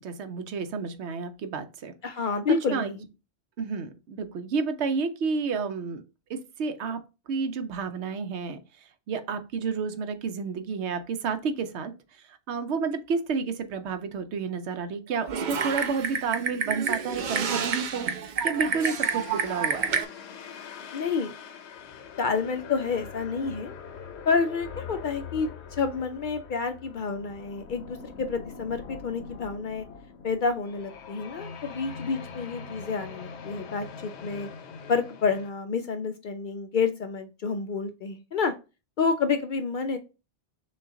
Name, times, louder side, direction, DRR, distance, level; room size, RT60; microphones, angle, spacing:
voice 1, 0.0-1.9 2.7-3.0 3.6-6.0 6.3-7.0 7.3-8.6 9.1-11.9 12.5-20.0, right 5 dB, 80° right, 0.9 m, -30 dB
voice 2, 2.0-3.0 20.9-21.4 22.2-23.7 24.3-29.9 30.2-34.5 34.9-38.5 39.0-40.0, left 5 dB, 60° left, 0.6 m, -29 dB
Typing, 15.3-20.0, right 6 dB, 55° right, 0.6 m, -29 dB
sound 1, 18.5-35.5, left 6 dB, 80° left, 0.9 m, -43 dB
6.3 x 2.3 x 3.6 m
omnidirectional pair, 1.1 m